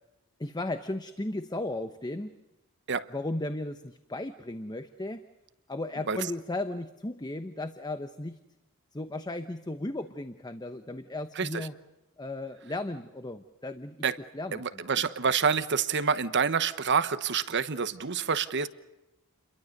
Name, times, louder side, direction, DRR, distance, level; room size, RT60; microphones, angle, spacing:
voice 1, 0.4-2.3 3.1-5.3 5.7-8.4 8.9-11.8 12.2-14.0 14.3-14.8, left 2 dB, 20° left, 9 dB, 0.9 m, -35 dB
voice 2, 11.4-11.7 14.0-14.2 14.5-18.7, right 6 dB, 55° right, 13 dB, 1.1 m, -27 dB
29.5 x 23.0 x 6.6 m, 1.0 s
head